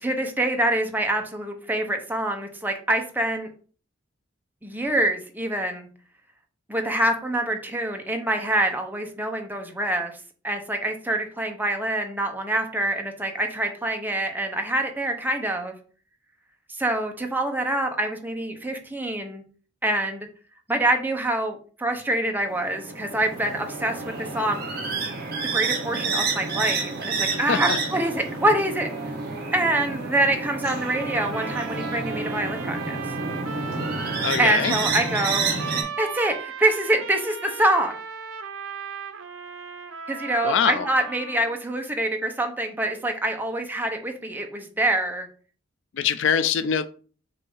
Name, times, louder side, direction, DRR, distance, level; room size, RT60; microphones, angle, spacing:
voice 1, 0.0-3.5 4.6-5.9 6.7-10.1 10.4-15.7 16.8-19.4 19.8-20.3 20.7-24.6 25.5-28.9 29.5-33.0 34.4-35.5 36.0-37.9 40.1-45.3, right 1 dB, 10° right, 0.9 m, -25 dB
sound 1, 22.5-35.8, right 4 dB, 50° right, 1.8 m, -29 dB
voice 2, 27.5-27.8 34.2-34.7 40.4-40.9 45.9-46.9, left 7 dB, 65° left, 0.4 m, -23 dB
sound 2, 30.6-41.6, right 6 dB, 75° right, 0.8 m, -37 dB
6.6 x 2.7 x 5.5 m
head